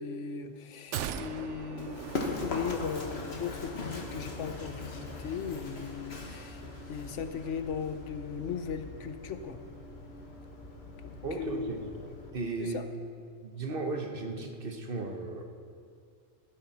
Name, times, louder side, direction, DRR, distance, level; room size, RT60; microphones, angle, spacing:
voice 1, 0.0-6.6 6.9-9.6 11.0-11.7 12.6-12.8, left 6 dB, 85° left, 9 dB, 1.1 m, -37 dB
sound 1, 0.9-3.3 3.6-3.7, right 9 dB, 85° right, 0.9 m, -39 dB
Run, 1.8-12.3, left 2 dB, 60° left, 1.7 m, -41 dB
voice 2, 11.2-11.9 12.3-12.8 13.4-15.5, right 3 dB, 50° right, 3 dB, 1.3 m, -35 dB
16.0 x 12.0 x 4.2 m, 2.2 s
omnidirectional pair, 1.2 m